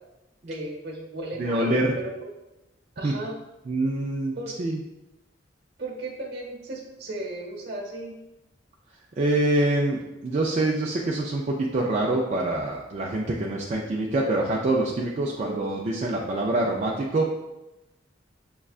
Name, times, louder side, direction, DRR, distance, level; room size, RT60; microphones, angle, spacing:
voice 1, 0.4-2.3 3.0-3.4 4.4-4.5 5.8-8.1 15.4-15.6, right 2 dB, 60° right, -1 dB, 1.0 m, -35 dB
voice 2, 1.4-1.9 3.0-3.2 3.7-4.8 9.2-17.3, right 2 dB, 40° right, -2 dB, 0.3 m, -25 dB
6.2 x 2.2 x 2.4 m, 0.97 s
head